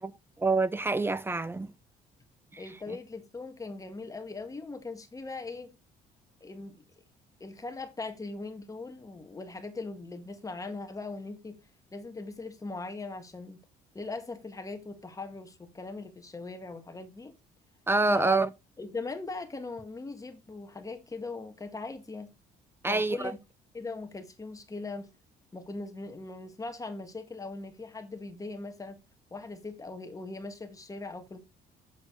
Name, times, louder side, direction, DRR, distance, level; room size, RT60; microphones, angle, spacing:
voice 1, 0.0-1.7 2.5-2.6 17.9-18.5 22.8-23.2, right 3 dB, 15° right, 0.5 m, -26 dB
voice 2, 2.6-5.8 6.4-6.8 7.4-11.6 11.9-13.6 13.9-17.3 18.1-18.4 18.8-22.3 22.8-23.4 23.7-25.1 25.5-29.0 29.3-31.4, left 3 dB, 20° left, 1.6 m, -40 dB
7.7 x 6.8 x 3.8 m
cardioid pair, 110°, 17 cm